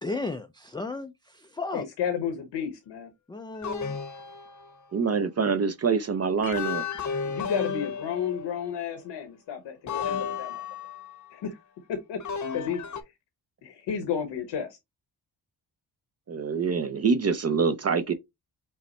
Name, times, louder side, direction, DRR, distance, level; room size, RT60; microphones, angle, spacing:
voice 1, 0.0-1.9 3.3-4.0, left 3 dB, 10° left, 0.3 m, -34 dB
voice 2, 1.7-3.1 7.2-10.6 11.3-11.5 12.1-12.2 12.5-12.8 13.6-14.7, left 8 dB, 85° left, 1.1 m, -32 dB
sound 1, 3.6-5.1 6.4-8.8 9.9-11.3 12.2-13.0, left 6 dB, 45° left, 0.8 m, -33 dB
voice 3, 4.9-6.8 16.3-18.1, right 5 dB, 35° right, 0.5 m, -25 dB
5.5 x 2.1 x 4.1 m
cardioid pair, 100°, 42 cm